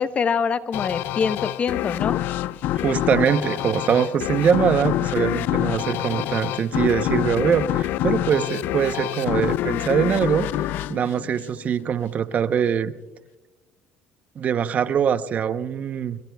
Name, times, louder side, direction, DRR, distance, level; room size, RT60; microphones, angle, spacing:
voice 1, 0.0-2.2, left 6 dB, 40° left, 11 dB, 1.0 m, -24 dB
sound 1, 0.7-12.0, left 14 dB, 70° left, 0.4 m, -26 dB
voice 2, 2.8-12.9 14.4-16.2, right 7 dB, 45° right, 12 dB, 0.8 m, -23 dB
24.0 x 22.0 x 2.3 m, 1.1 s
cardioid pair, 100°, 3 cm